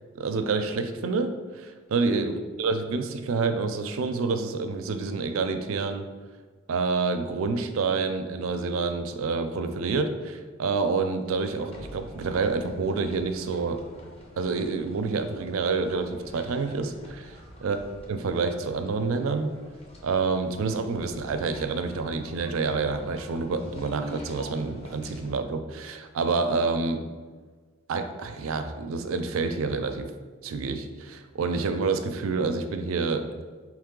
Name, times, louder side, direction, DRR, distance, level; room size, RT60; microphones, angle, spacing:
voice 1, 0.2-6.1 6.7-13.8 14.4-17.8 18.1-19.5 20.0-27.0 27.9-30.1 30.4-33.3, right 4 dB, 80° right, 8 dB, 0.4 m, -28 dB
sound 1, 11.3-25.3, equal, 30° left, 0.7 m, -47 dB
4.6 x 3.0 x 3.7 m, 1.4 s
head